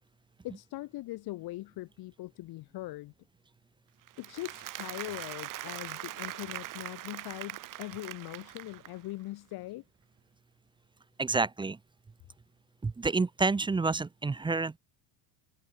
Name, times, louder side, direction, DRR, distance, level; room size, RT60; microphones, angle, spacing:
voice 1, 0.4-3.1 4.2-9.8, left 18 dB, 55° left, 4.9 m, -41 dB
Applause, 4.1-9.1, right 14 dB, 45° right, 2.2 m, -42 dB
voice 2, 11.2-11.8 12.8-14.8, right 3 dB, 10° right, 0.8 m, -29 dB
cardioid pair, 140°, 45 cm